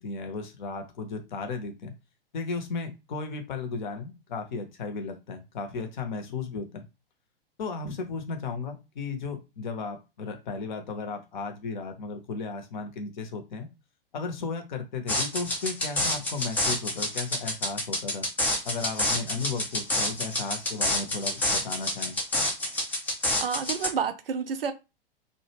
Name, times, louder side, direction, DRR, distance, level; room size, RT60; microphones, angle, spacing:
voice 1, 0.0-1.9 2.3-6.8 7.6-13.7 14.1-18.3 18.6-22.1, left 4 dB, 50° left, 0.6 m, -35 dB
sound 1, 15.1-23.9, left 1 dB, 5° left, 0.3 m, -28 dB
voice 2, 23.4-24.7, right 6 dB, 70° right, 0.5 m, -29 dB
2.1 x 2.1 x 3.2 m
figure-of-eight pair, 100°, 29 cm